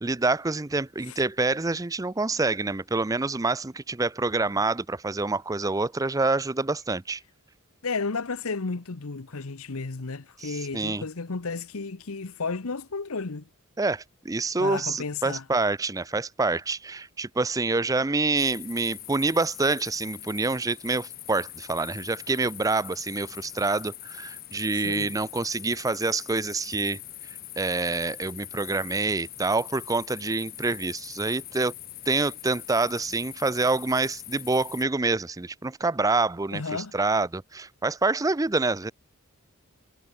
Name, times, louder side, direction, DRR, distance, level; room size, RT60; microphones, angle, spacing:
voice 1, 0.0-7.2 10.4-11.0 13.8-27.0 27.6-31.7 32.1-38.9, right 3 dB, 15° right, 0.5 m, -27 dB
voice 2, 7.8-13.5 14.6-15.4 24.7-25.1 36.5-36.9, left 4 dB, 75° left, 1.0 m, -33 dB
sound 1, 18.4-34.8, left 13 dB, 40° left, 2.6 m, -42 dB
head